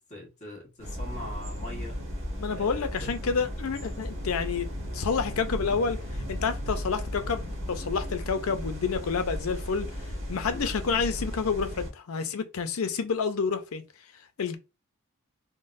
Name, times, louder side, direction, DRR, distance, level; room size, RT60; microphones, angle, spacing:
voice 1, 0.0-2.0 2.5-3.1 10.5-10.7, left 1 dB, 35° left, 1.3 m, -42 dB
sound 1, 0.8-11.9, equal, 70° right, 1.1 m, -35 dB
voice 2, 2.4-4.7 4.9-6.0 6.3-9.9 10.3-13.8 14.4-14.6, left 5 dB, 90° left, 0.6 m, -29 dB
3.7 x 2.1 x 2.5 m
head